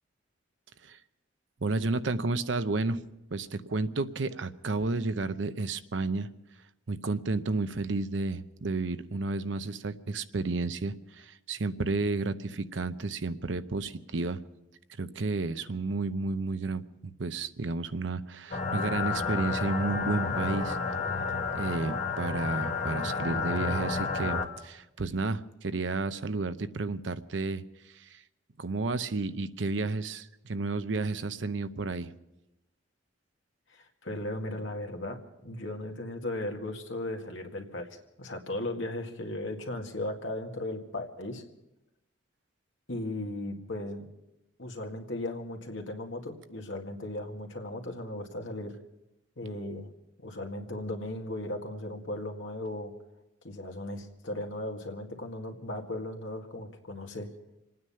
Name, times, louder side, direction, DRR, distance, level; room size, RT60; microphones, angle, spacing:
voice 1, 1.6-3.0 3.3-6.3 6.9-14.4 15.0-20.8 21.5-28.2 28.6-32.1, right 3 dB, 70° right, 12 dB, 0.7 m, -32 dB
sound 1, 18.5-24.4, left 4 dB, 40° left, 1.6 m, -31 dB
voice 2, 23.6-24.0 33.7-41.4 42.9-44.1 44.6-48.8 49.4-49.9 50.2-52.9 53.4-57.3, left 1 dB, 80° left, 3 dB, 2.0 m, -37 dB
26.5 x 9.6 x 5.7 m, 0.91 s
head